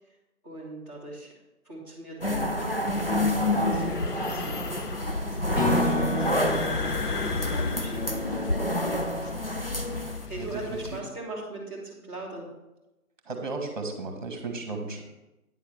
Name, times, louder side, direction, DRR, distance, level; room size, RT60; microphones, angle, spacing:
voice 1, 0.4-1.3 1.6-4.8 5.1-9.3 10.3-12.5, right 1 dB, 10° left, -10 dB, 1.8 m, -40 dB
sound 1, 2.2-10.3, left 1 dB, 40° left, 0.4 m, -28 dB
sound 2, 2.9-11.0, left 4 dB, 90° left, 1.1 m, -35 dB
Acoustic guitar / Strum, 5.5-8.9, left 1 dB, 55° left, 3.4 m, -31 dB
voice 2, 10.4-11.0 13.2-15.0, right 3 dB, 30° right, 3 dB, 1.7 m, -35 dB
9.6 x 4.3 x 6.8 m, 0.98 s
figure-of-eight pair, 170°, 46 cm